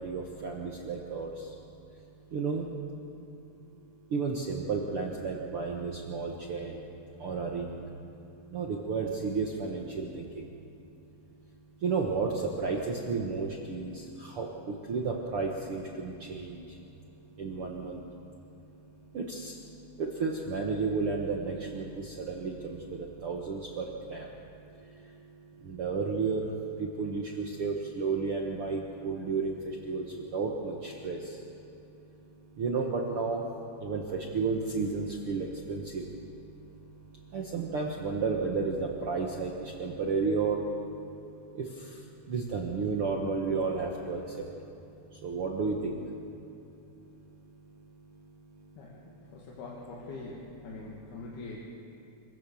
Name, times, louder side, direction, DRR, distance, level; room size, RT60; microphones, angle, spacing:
voice 1, 0.0-1.6 1.9-2.0 2.3-2.7 4.1-10.6 11.8-31.6 31.9-44.6 45.1-46.3 46.7-49.5, right 4 dB, 60° right, 0 dB, 1.5 m, -33 dB
voice 2, 49.3-51.6, left 3 dB, 85° left, -4 dB, 4.1 m, -43 dB
26.0 x 16.5 x 7.0 m, 2.8 s
omnidirectional pair, 4.4 m